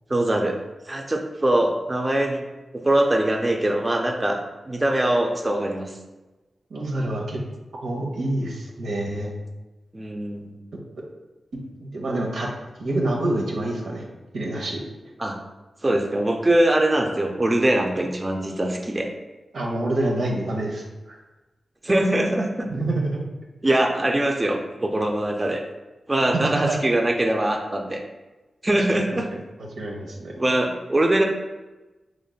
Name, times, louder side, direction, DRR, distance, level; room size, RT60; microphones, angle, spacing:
voice 1, 0.1-0.6 0.9-2.4 2.7-4.4 4.7-6.0 9.9-10.5 15.2-15.4 15.8-19.1 21.8-22.7 23.6-25.6 26.1-28.0 28.6-29.3 30.4-31.2, right 1 dB, 25° right, 2 dB, 0.4 m, -22 dB
voice 2, 6.7-7.4 7.7-9.3 11.8-12.5 12.8-14.0 14.3-14.8 19.5-21.2 22.7-23.2 26.3-26.8 28.9-29.0 29.8-30.3, right 1 dB, 85° right, -1 dB, 0.7 m, -27 dB
5.1 x 3.1 x 2.3 m, 1.1 s
cardioid pair, 70°, 0 cm